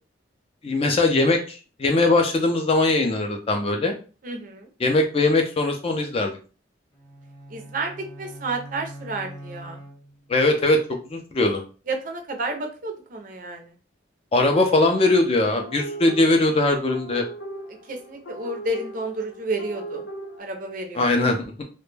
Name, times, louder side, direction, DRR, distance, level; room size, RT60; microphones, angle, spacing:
voice 1, 0.6-4.0 4.8-6.4 10.3-10.8 11.1-11.6 14.3-17.3 21.0-21.5, left 2 dB, 30° left, 4 dB, 0.3 m, -20 dB
voice 2, 4.2-4.7 7.5-9.8 11.9-13.7 17.9-20.0 20.4-21.3, right 2 dB, 45° right, 4 dB, 0.5 m, -31 dB
sound 1, 6.9-10.5, right 1 dB, 10° left, 0.8 m, -42 dB
sound 2, 15.6-20.4, right 1 dB, 80° left, 0.8 m, -38 dB
2.1 x 2.1 x 3.1 m, 0.36 s
head